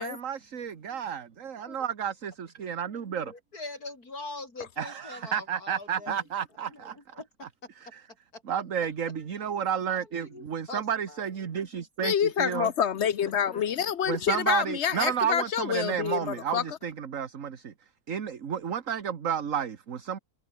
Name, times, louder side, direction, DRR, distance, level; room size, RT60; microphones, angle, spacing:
voice 1, 0.0-3.3 4.8-7.0 7.8-8.0 8.5-12.7 14.1-17.7 18.1-20.2, right 8 dB, 60° right, 1.8 m, -31 dB
voice 2, 3.2-6.2 6.7-7.5 8.3-8.4 9.9-10.8 11.1-11.3 13.5-13.7, left 2 dB, 85° left, 5.9 m, -42 dB
voice 3, 12.0-16.8, left 8 dB, 55° left, 1.0 m, -27 dB
omnidirectional pair, 1.6 m